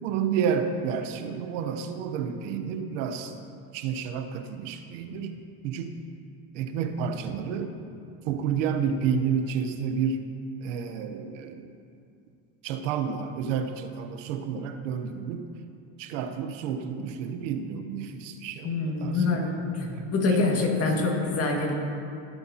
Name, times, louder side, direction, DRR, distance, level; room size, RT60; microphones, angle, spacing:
voice 1, 0.0-3.3 3.7-5.4 5.6-6.0 6.5-7.7 8.2-10.2 10.6-11.7 12.6-15.5 16.0-19.5 19.9-20.1 20.4-20.8, right 7 dB, 85° right, 7 dB, 1.0 m, -30 dB
voice 2, 18.6-21.7, left 3 dB, 40° left, 0 dB, 2.1 m, -25 dB
20.0 x 8.1 x 2.9 m, 2.5 s
supercardioid pair, 110°, 36 cm